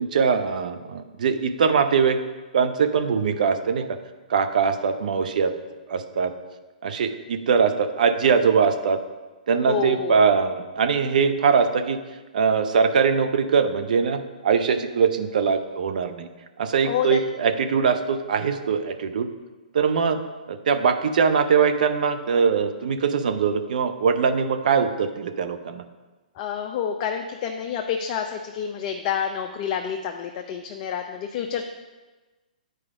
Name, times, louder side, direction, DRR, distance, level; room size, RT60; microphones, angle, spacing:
voice 1, 0.0-2.2 2.5-4.0 4.3-5.5 5.9-6.3 6.8-9.0 9.5-12.0 12.3-16.3 16.6-19.3 19.7-20.2 20.5-25.8, right 6 dB, 60° right, 8 dB, 0.7 m, -22 dB
voice 2, 9.7-10.2 16.8-17.2 26.4-31.6, left 8 dB, 35° left, 4 dB, 0.6 m, -28 dB
9.1 x 4.9 x 4.8 m, 1.2 s
hypercardioid pair, 130°, 5 cm